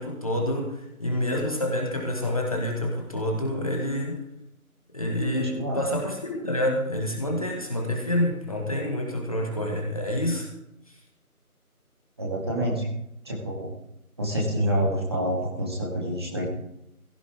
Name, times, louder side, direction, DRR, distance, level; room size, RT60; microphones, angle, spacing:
voice 1, 0.0-4.2 4.9-10.5, left 1 dB, 25° left, 0 dB, 1.8 m, -27 dB
voice 2, 12.2-12.9 13.2-13.7 14.2-16.5, equal, 15° right, -3 dB, 2.1 m, -27 dB
16.5 x 15.0 x 3.6 m, 0.82 s
figure-of-eight pair, 165°, 45 cm